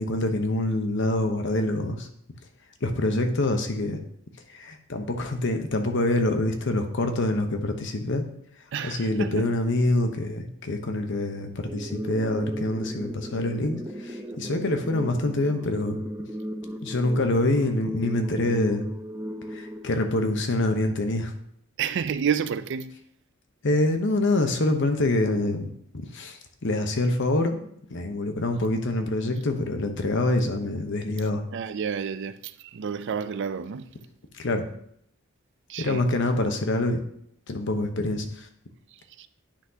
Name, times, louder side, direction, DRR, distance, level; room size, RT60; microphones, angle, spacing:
voice 1, 0.0-2.1 2.8-4.0 4.5-8.2 8.8-16.0 16.8-18.8 19.5-21.3 23.6-27.6 27.9-31.4 34.3-34.7 35.8-37.0 37.5-38.5, left 2 dB, 65° left, 0.9 m, -26 dB
voice 2, 8.7-9.5 21.8-23.0 31.5-33.9 35.7-36.1 39.2-39.3, right 7 dB, 60° right, 0.4 m, -30 dB
sound 1, 11.7-20.7, equal, 15° right, 0.7 m, -36 dB
10.0 x 5.9 x 2.8 m
head